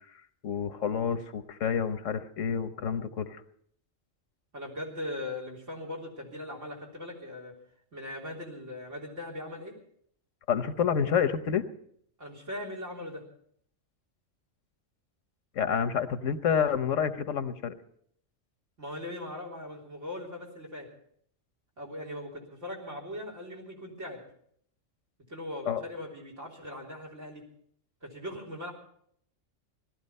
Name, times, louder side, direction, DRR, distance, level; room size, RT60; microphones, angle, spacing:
voice 1, 0.4-3.4 10.5-11.6 15.5-17.7 25.7-25.8, left 7 dB, 90° left, 11 dB, 1.3 m, -28 dB
voice 2, 4.5-7.5 7.9-9.7 12.2-13.2 18.8-20.9 21.8-24.2 25.3-27.4 28.0-28.7, left 1 dB, 80° right, 1 dB, 4.0 m, -39 dB
18.0 x 13.0 x 5.4 m, 0.66 s
omnidirectional pair, 1.3 m